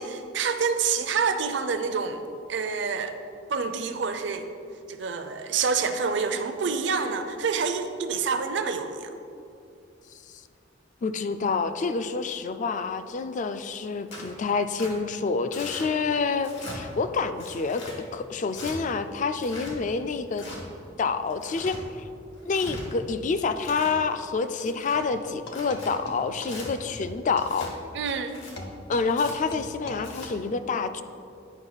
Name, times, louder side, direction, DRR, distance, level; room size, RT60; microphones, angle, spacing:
voice 1, 0.0-2.2 2.5-3.2 3.5-4.5 4.9-9.1 27.9-28.4, right 5 dB, 65° right, 8 dB, 0.5 m, -27 dB
voice 2, 11.0-20.5 21.0-21.8 22.4-27.7 28.9-31.0, left 4 dB, 40° left, 11 dB, 0.3 m, -28 dB
Tearing, 14.1-14.3 14.8-14.9 15.5-15.9 16.4-16.8 17.4-18.0 18.5-18.7 19.4-19.7 20.3-20.6 21.3-21.8 22.4-22.8 23.4-24.0 24.5-25.0 25.5-25.9 26.4-26.7 27.4-27.7 28.2-28.5 29.1-29.3 29.9-30.3, left 1 dB, 80° left, 1.8 m, -41 dB
sound 1, 25.1-30.3, left 1 dB, 60° left, 0.9 m, -41 dB
9.8 x 5.2 x 4.0 m, 2.6 s
head